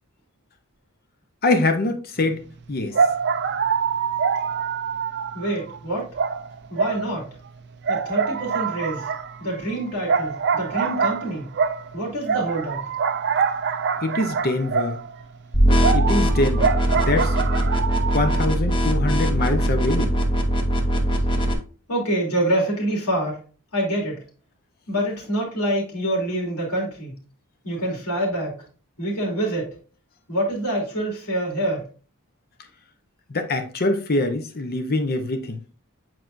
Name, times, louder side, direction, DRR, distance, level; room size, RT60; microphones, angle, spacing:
voice 1, 1.4-2.4 2.7-3.0 14.0-15.0 15.9-17.3 18.1-20.1 33.3-35.6, left 2 dB, 45° left, 0.8 m, -24 dB
sound 1, 2.3-2.4 2.9-5.8 6.1-7.5 7.8-15.2 15.8-18.4, right 6 dB, 50° right, 0.5 m, -25 dB
voice 2, 5.3-6.1 6.7-7.3 7.9-9.1 9.4-11.5 11.9-12.8 21.9-23.4 23.7-24.2 24.9-27.2 27.6-28.6 29.0-29.8 30.3-31.9, right 1 dB, 85° left, 3.0 m, -26 dB
sound 2, 15.5-21.5, equal, 20° left, 1.0 m, -21 dB
8.1 x 4.5 x 2.6 m
head